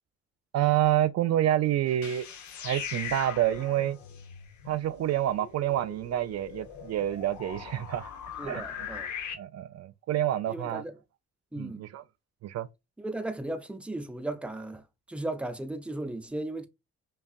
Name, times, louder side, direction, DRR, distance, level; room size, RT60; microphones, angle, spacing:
voice 1, 0.5-2.2 2.6-4.0 4.7-8.1 8.4-8.9 9.3-10.8 11.6-12.0 12.4-12.7, right 12 dB, 60° right, 0.4 m, -28 dB
sound 1, 1.9-9.3, left 7 dB, 75° left, 0.9 m, -41 dB
voice 2, 8.4-9.1 10.5-10.9 11.5-11.8 13.0-14.8 15.1-16.7, right 2 dB, 5° right, 0.6 m, -36 dB
5.3 x 2.4 x 2.4 m
cardioid pair, 90°, 30 cm